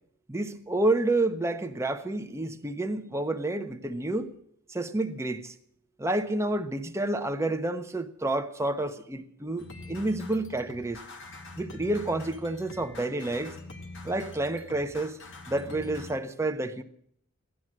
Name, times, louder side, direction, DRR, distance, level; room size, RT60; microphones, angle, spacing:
voice 1, 0.3-4.3 4.7-5.5 6.0-11.0 11.6-13.5 14.0-15.2 15.5-16.8, right 2 dB, 15° right, 1.0 m, -29 dB
sound 1, 9.6-16.1, left 2 dB, 60° left, 2.1 m, -44 dB
16.0 x 11.0 x 7.5 m
head